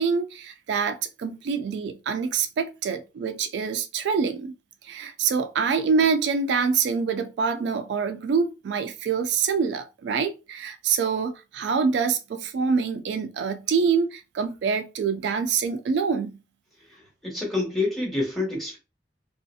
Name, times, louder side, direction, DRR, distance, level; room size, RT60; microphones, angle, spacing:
voice 1, 0.0-4.5 4.8-16.4, right 5 dB, 75° right, 0.3 m, -25 dB
voice 2, 16.9-18.8, left 2 dB, ahead, 1.0 m, -28 dB
2.7 x 2.4 x 2.3 m
head